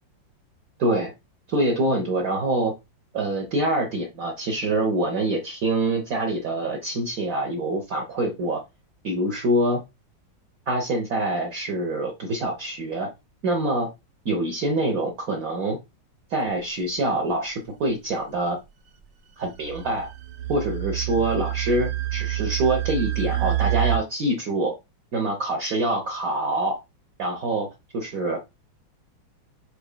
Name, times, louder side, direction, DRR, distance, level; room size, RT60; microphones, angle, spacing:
voice 1, 0.8-1.1 1.5-2.7 3.1-8.6 9.0-9.8 10.7-13.1 13.4-13.9 14.2-15.8 16.3-18.6 19.4-20.1 20.5-24.7 25.1-26.8 27.2-27.7 27.9-28.4, right 1 dB, 55° right, 1 dB, 1.2 m, -25 dB
sound 1, 19.6-24.0, right 15 dB, 75° right, 1.4 m, -27 dB
7.0 x 3.1 x 2.2 m, 0.23 s
omnidirectional pair, 2.1 m